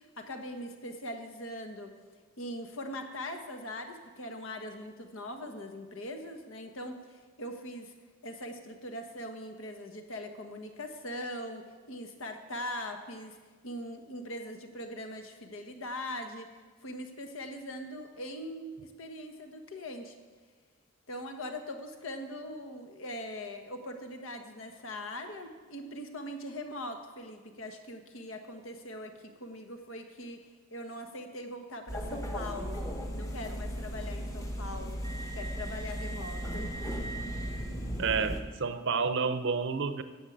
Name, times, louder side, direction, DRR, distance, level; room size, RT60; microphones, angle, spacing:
voice 1, 0.0-1.9 2.4-7.9 8.2-13.4 13.6-16.5 16.8-20.1 21.1-32.8 33.1-35.0 35.3-37.6, left 1 dB, 70° left, 5 dB, 1.3 m, -41 dB
sound 1, 31.9-38.4, equal, 15° left, 1.1 m, -36 dB
voice 2, 38.0-40.0, right 5 dB, 60° right, 11 dB, 0.7 m, -30 dB
10.0 x 7.3 x 8.6 m, 1.4 s
head